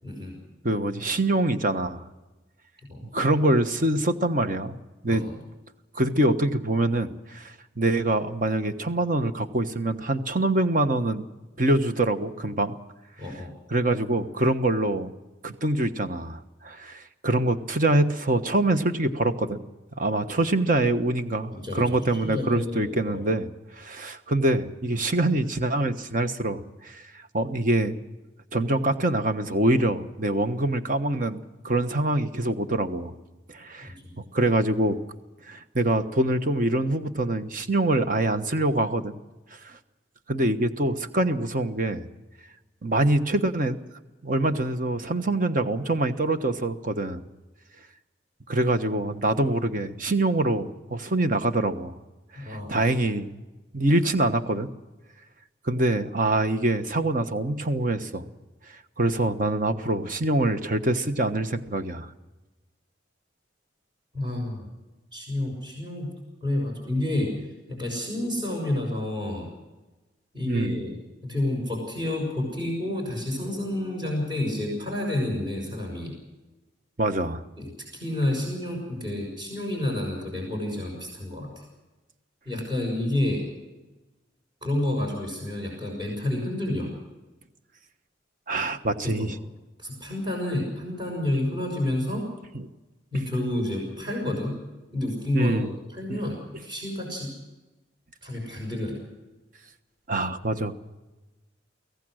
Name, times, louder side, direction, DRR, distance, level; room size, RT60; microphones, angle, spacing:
voice 1, 0.0-0.4 2.9-3.0 5.1-5.4 13.2-13.5 21.5-23.3 33.8-34.1 52.3-52.9 64.1-64.7 65.1-66.1 66.4-69.5 70.3-71.0 71.2-76.1 77.6-81.6 82.4-83.5 84.6-86.9 89.0-89.4 89.8-92.3 93.1-94.6 94.9-95.6 95.9-97.3 98.2-99.0, left 1 dB, 25° right, 0 dB, 6.2 m, -29 dB
voice 2, 0.6-2.0 3.1-4.8 5.0-5.2 5.9-11.2 11.6-12.7 13.7-15.1 15.4-19.6 20.0-23.5 23.8-28.0 28.5-33.1 33.5-35.0 35.4-39.2 39.5-39.8 40.3-42.1 42.8-43.8 44.2-47.2 48.5-51.9 52.3-53.4 53.7-54.7 55.6-58.2 59.0-62.1 70.4-70.8 77.0-77.4 88.5-89.3 95.3-95.7 96.1-96.2 100.1-100.8, right 2 dB, 45° right, 8 dB, 1.2 m, -25 dB
24.5 x 16.5 x 6.4 m, 1.1 s
head